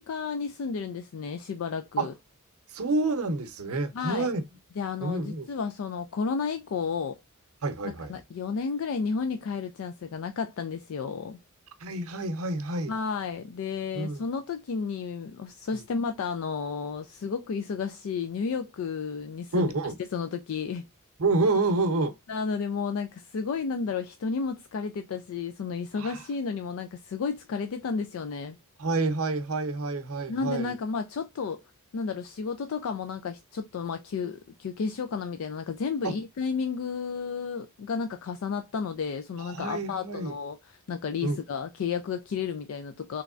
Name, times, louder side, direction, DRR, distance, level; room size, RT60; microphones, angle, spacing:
voice 1, 0.0-2.1 3.9-4.3 4.8-7.2 7.8-11.4 12.9-19.7 20.1-20.8 22.3-28.6 30.3-31.6 31.9-40.6 40.9-43.2, left 5 dB, 65° left, 0.3 m, -32 dB
voice 2, 2.7-4.4 5.0-5.5 7.6-8.1 11.8-12.9 13.9-14.3 15.7-15.8 19.5-19.9 21.2-22.2 25.9-26.2 28.8-30.7 36.0-36.1 39.4-40.3 41.2-41.4, right 3 dB, 70° right, 0.7 m, -28 dB
3.5 x 3.1 x 2.4 m
head